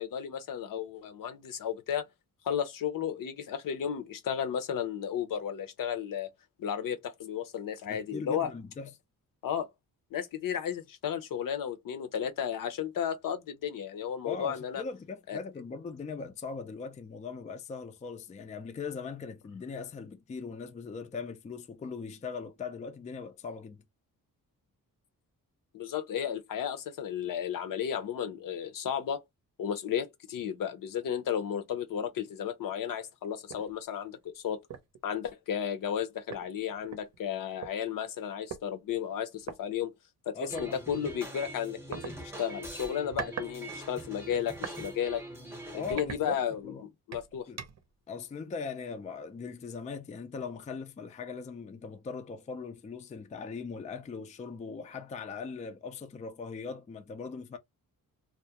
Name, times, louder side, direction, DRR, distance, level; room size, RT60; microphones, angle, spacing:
voice 1, 0.0-2.1 2.4-6.3 6.6-8.5 9.4-9.7 10.1-14.8 15.3-15.4 25.7-29.2 29.6-34.6 35.0-39.9 40.3-45.2 45.7-46.7 47.1-47.5, left 8 dB, 65° left, 0.6 m, -33 dB
voice 2, 7.9-8.9 14.2-23.8 40.3-40.8 45.7-46.8 47.5-47.6 48.1-57.6, left 5 dB, 20° left, 0.3 m, -40 dB
sound 1, 33.5-33.7 34.1-34.3 34.7-35.0 35.9-36.0 36.3-37.7 38.5-38.6 39.4-39.6 40.6-40.7 41.9-42.1 42.8-43.5 43.8-44.8 45.3-45.4 45.9-46.7 47.1-47.9, right 7 dB, 50° right, 0.7 m, -41 dB
sound 2, 40.5-45.9, right 1 dB, 5° right, 0.7 m, -43 dB
2.3 x 2.1 x 2.7 m
cardioid pair, 85°, 36 cm